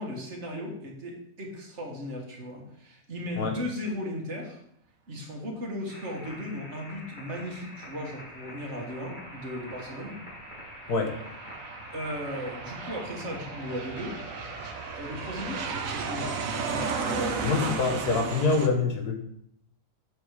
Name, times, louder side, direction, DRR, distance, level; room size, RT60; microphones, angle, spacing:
voice 1, 0.0-4.6 5.1-10.2 11.9-14.2 14.9-17.8, left 1 dB, 45° right, -1 dB, 2.2 m, -36 dB
sound 1, 5.9-17.9, left 1 dB, 30° left, 3.3 m, -46 dB
Aircraft, 8.5-18.7, right 5 dB, 60° right, 1.2 m, -35 dB
voice 2, 17.4-19.2, left 4 dB, 75° left, 3 dB, 1.9 m, -25 dB
7.6 x 6.9 x 4.9 m, 0.71 s
omnidirectional pair, 1.7 m